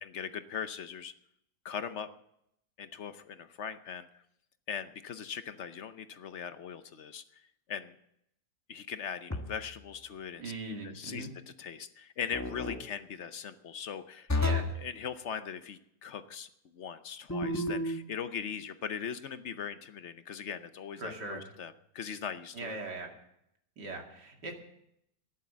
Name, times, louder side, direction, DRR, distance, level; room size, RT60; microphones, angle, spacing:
voice 1, 0.0-1.1 1.6-2.1 2.8-4.1 4.7-7.4 7.7-8.0 8.7-10.4 10.8-11.3 11.6-22.8, left 7 dB, 55° left, 11 dB, 0.9 m, -40 dB
sound 1, 9.3-9.8 12.3-12.8 14.3-14.8 17.3-18.0, left 2 dB, 10° left, 1.1 m, -31 dB
voice 2, 10.4-11.3 14.4-14.7 21.0-21.5 22.5-23.1 23.8-24.5, right 2 dB, 85° right, 2 dB, 3.0 m, -40 dB
13.5 x 11.0 x 7.3 m, 0.77 s
omnidirectional pair, 1.8 m